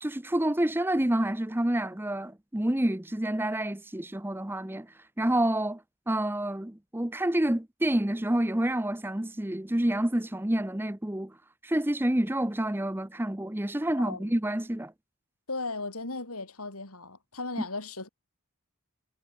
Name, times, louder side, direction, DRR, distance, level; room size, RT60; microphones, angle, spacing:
voice 1, 0.0-4.9 5.2-5.8 6.1-11.3 11.6-14.9, right 1 dB, 10° right, 0.6 m, -28 dB
voice 2, 14.0-14.3 15.5-18.1, left 3 dB, 85° left, 5.6 m, -36 dB
head